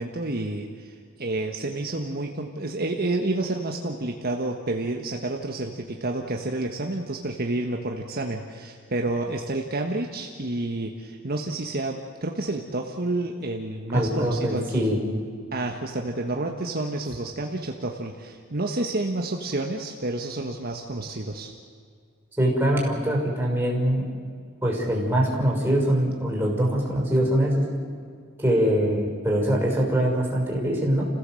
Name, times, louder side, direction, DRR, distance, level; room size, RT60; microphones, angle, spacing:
voice 1, 0.0-14.9 15.5-21.5, right 2 dB, 50° right, 2 dB, 1.5 m, -29 dB
voice 2, 13.9-15.0 22.4-24.1 24.6-27.7 28.4-31.1, equal, 10° right, -2 dB, 6.0 m, -23 dB
30.0 x 16.0 x 7.8 m, 2.1 s
head